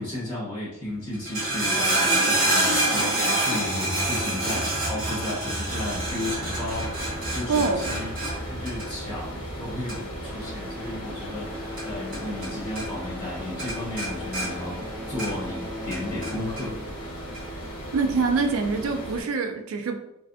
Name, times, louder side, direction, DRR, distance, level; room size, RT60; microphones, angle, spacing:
voice 1, 0.0-8.1 8.5-16.8, left 1 dB, 25° left, -9 dB, 0.9 m, -34 dB
sound 1, 1.1-12.5 12.8-13.3 13.6-15.6 15.9-16.7 17.3-17.4, right 2 dB, 45° right, 0.9 m, -27 dB
sound 2, 3.9-8.8 9.1-9.4 10.0-17.0, left 2 dB, 10° right, 0.6 m, -41 dB
sound 3, 5.7-19.2, equal, 65° left, 0.8 m, -37 dB
voice 2, 7.5-7.8 17.9-20.0, right 4 dB, 70° right, 6 dB, 0.4 m, -25 dB
2.6 x 2.1 x 2.5 m, 0.87 s
head